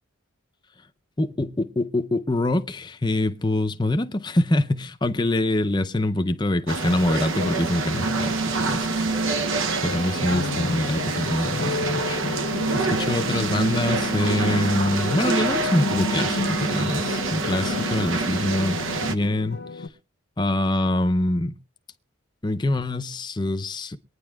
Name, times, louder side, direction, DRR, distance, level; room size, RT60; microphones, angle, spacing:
voice 1, 1.2-8.9 9.8-12.5 12.7-19.6 20.4-21.6 22.4-24.0, left 1 dB, 20° left, 0.6 m, -25 dB
sound 1, 6.7-19.1, right 3 dB, 70° right, 0.7 m, -26 dB
sound 2, 9.8-19.9, left 3 dB, 75° left, 0.9 m, -32 dB
23.0 x 9.6 x 2.3 m
head